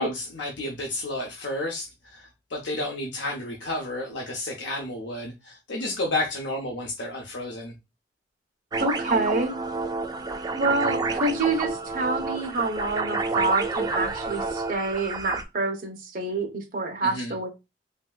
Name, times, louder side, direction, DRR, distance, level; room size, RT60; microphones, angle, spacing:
voice 1, 0.0-7.7 17.0-17.3, left 1 dB, 80° left, 0.7 m, -31 dB
sound 1, 8.7-15.4, right 3 dB, 20° right, 0.3 m, -29 dB
voice 2, 8.8-9.5 10.5-17.5, right 3 dB, 50° right, 0.8 m, -27 dB
3.2 x 2.7 x 2.3 m
head